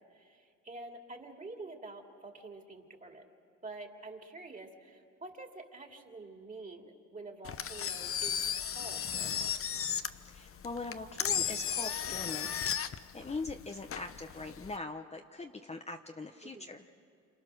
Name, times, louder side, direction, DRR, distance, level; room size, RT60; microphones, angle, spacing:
voice 1, 0.0-3.2 3.6-9.5 16.5-16.7, right 2 dB, 25° right, 2 dB, 2.8 m, -48 dB
Engine, 7.4-14.8, left 8 dB, 45° left, 0.8 m, -35 dB
voice 2, 10.2-12.7 13.1-16.9, left 3 dB, 20° left, 5 dB, 0.9 m, -42 dB
27.5 x 27.0 x 6.4 m, 2.3 s
cardioid pair, 90°, 30 cm